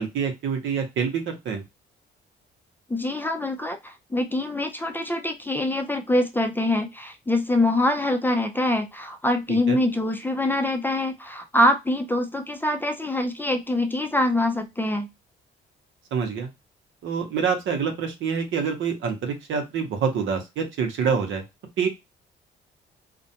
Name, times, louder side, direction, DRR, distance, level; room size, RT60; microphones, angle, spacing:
voice 1, 0.0-1.6 9.5-9.8 16.1-16.5 17.0-21.4 21.8-21.9, right 6 dB, 75° right, 4 dB, 0.8 m, -26 dB
voice 2, 2.9-15.1, left 1 dB, 10° left, 5 dB, 0.4 m, -24 dB
2.5 x 2.1 x 2.7 m, 0.22 s
cardioid pair, 90°, 20 cm